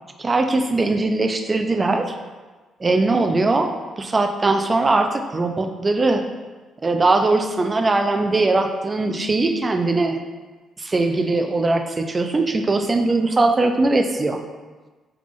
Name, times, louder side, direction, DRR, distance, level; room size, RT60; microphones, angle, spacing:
voice 1, 0.2-2.2 2.8-6.2 6.8-10.2 10.8-14.4, right 2 dB, 25° right, 5 dB, 0.3 m, -20 dB
3.4 x 3.4 x 2.4 m, 1.3 s
cardioid pair, 90°, 0 cm